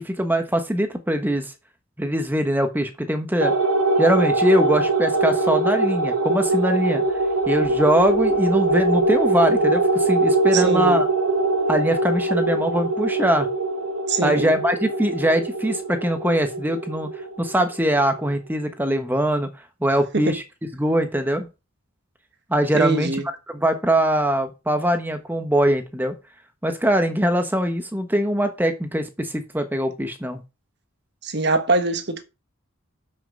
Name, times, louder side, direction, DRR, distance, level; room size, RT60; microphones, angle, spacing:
voice 1, 0.0-1.5 2.0-3.5 4.0-7.0 7.5-11.1 11.7-13.5 14.2-17.1 17.4-19.5 19.8-20.4 20.7-21.5 22.5-23.1 23.5-26.1 26.6-30.4, right 1 dB, 10° right, 1.1 m, -22 dB
sound 1, 3.4-18.2, right 2 dB, 80° right, 1.5 m, -22 dB
voice 2, 10.5-11.0 14.1-14.5 20.1-20.3 22.7-23.3 31.2-32.2, right 3 dB, 50° right, 1.3 m, -23 dB
7.7 x 6.3 x 5.3 m
head